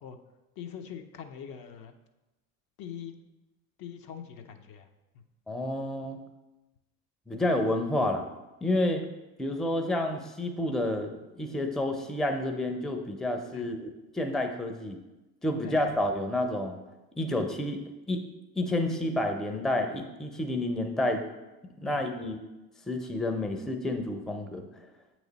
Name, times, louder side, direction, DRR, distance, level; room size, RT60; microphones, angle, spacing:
voice 1, 0.6-1.9 2.8-3.2 3.8-4.9 5.1-5.2 13.5-13.7 15.6-16.0 21.9-22.0, left 8 dB, 55° left, 6 dB, 0.7 m, -43 dB
voice 2, 5.5-6.2 7.3-8.3 8.6-9.0 9.4-15.0 15.4-16.8 17.2-17.8 18.1-18.2 18.6-21.2 21.8-22.4 22.9-24.7, left 1 dB, ahead, 5 dB, 0.5 m, -29 dB
7.9 x 3.0 x 4.0 m, 1.0 s
hypercardioid pair, 65°, 43 cm